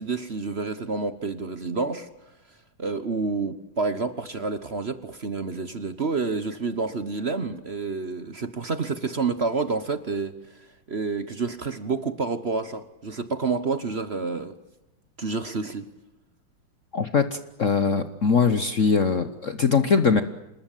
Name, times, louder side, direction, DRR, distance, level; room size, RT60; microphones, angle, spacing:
voice 1, 0.0-2.1 2.8-14.5 15.2-15.9, right 4 dB, 40° right, 12 dB, 1.1 m, -29 dB
voice 2, 16.9-20.2, left 5 dB, 45° left, 10 dB, 1.1 m, -22 dB
27.0 x 20.5 x 9.1 m, 0.91 s
omnidirectional pair, 2.3 m